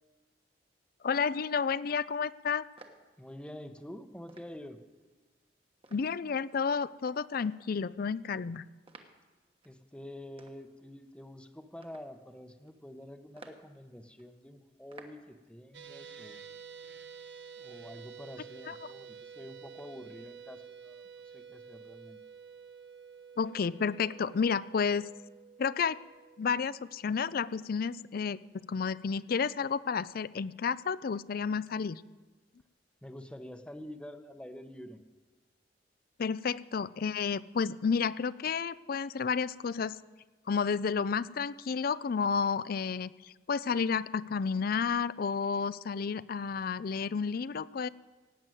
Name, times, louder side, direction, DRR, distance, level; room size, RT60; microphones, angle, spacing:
voice 1, 1.0-2.6 5.9-8.6 18.7-18.8 23.4-25.1 25.6-26.0 26.4-32.0 36.2-40.0 40.5-47.9, left 5 dB, 55° left, 18 dB, 0.4 m, -31 dB
sound 1, 2.8-15.4, right 3 dB, 30° right, 1.3 m, -58 dB
voice 2, 3.2-4.8 9.6-16.4 17.6-22.2 33.0-35.0, left 1 dB, 5° left, 8 dB, 0.9 m, -47 dB
sound 2, 15.7-28.1, right 6 dB, 70° right, 1.1 m, -50 dB
17.0 x 7.8 x 9.1 m, 1.2 s
head